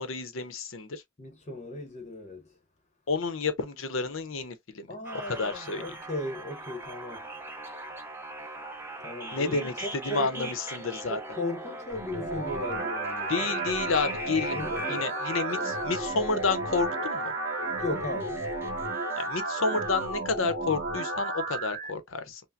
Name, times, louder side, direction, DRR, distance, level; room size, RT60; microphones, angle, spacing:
voice 1, 0.0-1.0 3.1-4.9 5.1-5.8 9.3-11.2 13.3-14.6 14.9-17.3 19.2-22.4, left 4 dB, 70° left, 0.7 m, -30 dB
voice 2, 1.2-2.5 4.9-7.3 9.0-10.5 11.1-13.4 14.4-15.0 17.8-18.5, left 1 dB, 35° left, 0.9 m, -37 dB
sound 1, 5.0-20.1, right 1 dB, 10° right, 0.7 m, -40 dB
sound 2, 11.9-21.9, right 2 dB, 50° right, 1.0 m, -33 dB
5.7 x 2.1 x 2.5 m
head